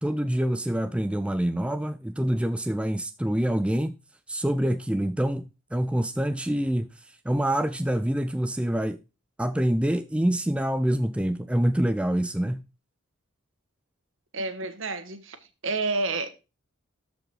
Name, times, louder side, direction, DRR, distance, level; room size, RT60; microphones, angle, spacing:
voice 1, 0.0-3.9 4.3-6.9 7.2-9.0 9.4-12.6, right 1 dB, 5° right, 0.4 m, -26 dB
voice 2, 14.3-15.4 15.6-16.4, right 3 dB, 65° right, 1.5 m, -29 dB
13.0 x 5.2 x 4.7 m
head